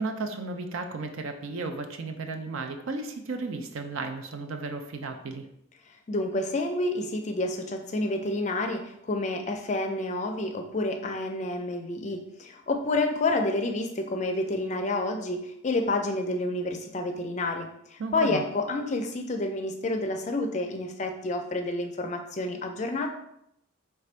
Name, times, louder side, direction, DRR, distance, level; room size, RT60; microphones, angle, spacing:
voice 1, 0.0-5.5 18.0-18.4, right 3 dB, 75° right, 6 dB, 0.5 m, -34 dB
voice 2, 6.1-23.1, left 2 dB, 35° left, 4 dB, 0.4 m, -29 dB
3.3 x 2.5 x 4.3 m, 0.76 s
head